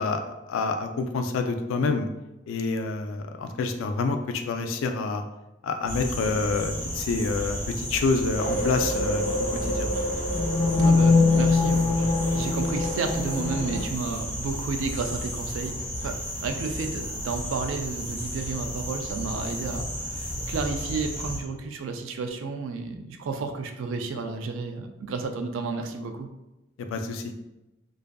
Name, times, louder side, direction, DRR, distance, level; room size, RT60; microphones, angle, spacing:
voice 1, 0.0-2.1 2.5-5.2 5.6-9.9 26.8-27.3, left 4 dB, 85° left, 7 dB, 0.3 m, -28 dB
sound 1, 5.9-21.4, equal, 35° left, 0.9 m, -33 dB
sound 2, 8.4-13.8, left 3 dB, 15° left, 0.5 m, -23 dB
voice 2, 10.7-15.7 16.0-16.2 16.4-26.3, right 4 dB, 75° right, 6 dB, 0.3 m, -32 dB
2.5 x 2.4 x 2.2 m, 0.96 s
head